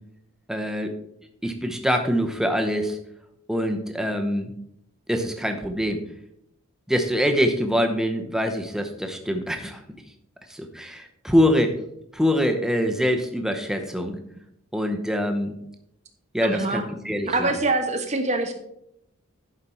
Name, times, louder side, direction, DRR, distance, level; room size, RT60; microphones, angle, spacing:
voice 1, 0.5-0.9 1.4-3.0 3.5-4.5 5.1-6.0 6.9-9.8 10.5-11.8 12.1-14.2 14.7-15.5 16.3-17.6, equal, ahead, 5 dB, 0.8 m, -24 dB
voice 2, 16.4-16.8 17.3-18.5, right 2 dB, 30° right, 5 dB, 1.1 m, -24 dB
11.0 x 5.2 x 4.4 m, 0.76 s
head